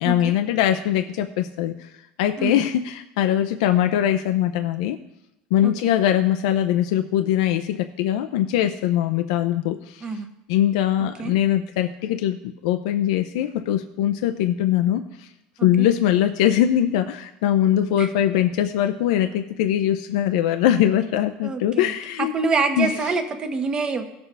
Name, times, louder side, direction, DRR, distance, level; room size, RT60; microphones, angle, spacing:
voice 1, 0.0-1.9 2.2-5.0 5.5-10.1 10.5-15.3 15.6-22.3 22.8-22.9, left 11 dB, 85° left, 8 dB, 0.5 m, -22 dB
voice 2, 5.6-6.0 10.0-10.3 11.0-11.3 15.6-15.9 18.0-18.1 21.4-21.9 22.2-24.0, right 4 dB, 25° right, 6 dB, 1.1 m, -26 dB
17.0 x 6.7 x 3.4 m, 0.90 s
cardioid pair, 145°, 3 cm